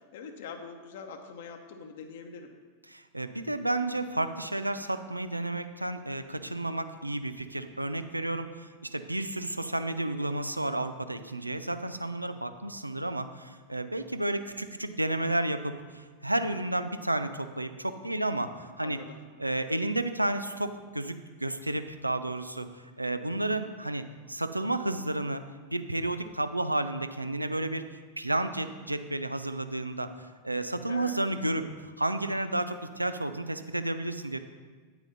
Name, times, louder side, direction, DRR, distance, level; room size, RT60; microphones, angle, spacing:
voice 1, 0.0-2.5 18.8-19.2 30.9-31.2, left 6 dB, 55° left, 5 dB, 1.0 m, -43 dB
voice 2, 2.9-19.0 19.4-22.7 23.0-25.4 25.7-27.8 28.2-34.4, right 1 dB, 85° right, 10 dB, 0.5 m, -32 dB
9.3 x 9.0 x 4.1 m, 1.4 s
figure-of-eight pair, 90°, 0 cm